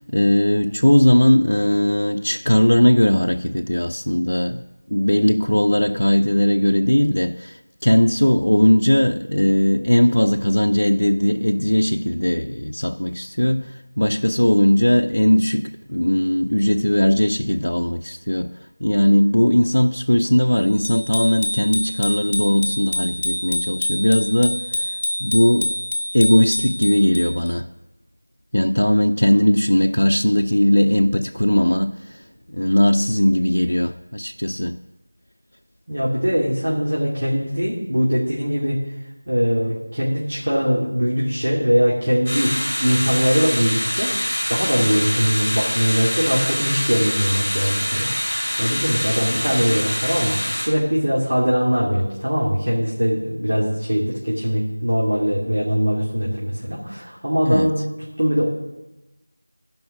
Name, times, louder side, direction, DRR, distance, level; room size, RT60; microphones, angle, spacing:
voice 1, 0.1-4.6 4.9-18.5 18.8-24.9 25.2-25.7 26.1-27.7 28.5-32.2 32.5-34.8 57.5-57.7, left 1 dB, 85° left, 0.4 m, -18 dB
Bicycle bell, 20.8-27.5, left 1 dB, 20° left, 1.0 m, -26 dB
voice 2, 35.9-38.8 39.3-44.1 44.5-50.4 50.6-57.8 58.2-58.5, equal, 70° right, 2.4 m, -21 dB
sound 1, 42.3-50.7, equal, 5° right, 2.8 m, -25 dB
13.0 x 5.4 x 6.0 m
figure-of-eight pair, 175°, 0 cm